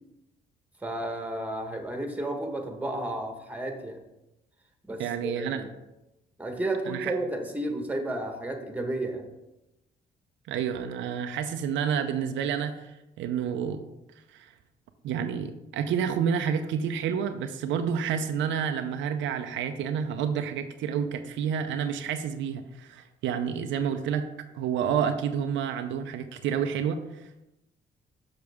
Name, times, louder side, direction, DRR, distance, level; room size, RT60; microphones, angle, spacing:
voice 1, 0.8-4.0 4.9-5.7 6.4-9.3, right 1 dB, 10° right, 4 dB, 1.3 m, -32 dB
voice 2, 5.0-5.6 6.9-7.1 10.5-13.8 14.3-14.5 15.0-24.3 24.5-27.4, right 7 dB, 85° right, 7 dB, 0.5 m, -29 dB
6.5 x 5.7 x 3.5 m, 0.94 s
cardioid pair, 75°, 19 cm